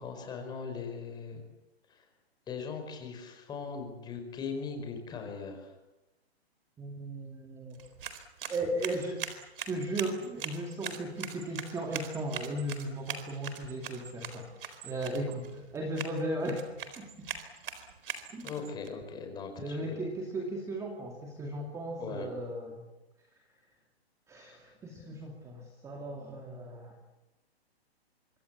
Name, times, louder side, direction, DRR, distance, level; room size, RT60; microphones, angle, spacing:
voice 1, 0.0-1.4 1.9-2.0 2.5-5.7 18.4-20.0 22.0-22.3, left 5 dB, 15° left, 5 dB, 5.0 m, -39 dB
voice 2, 6.8-7.8 8.5-9.2 9.7-16.7 17.0-17.3 18.3-18.5 19.6-22.8 24.3-27.0, right 1 dB, 10° right, 2 dB, 2.4 m, -36 dB
sound 1, 7.7-18.9, right 7 dB, 55° right, 4.3 m, -42 dB
25.5 x 24.5 x 8.4 m, 1.0 s
hypercardioid pair, 155°, 32 cm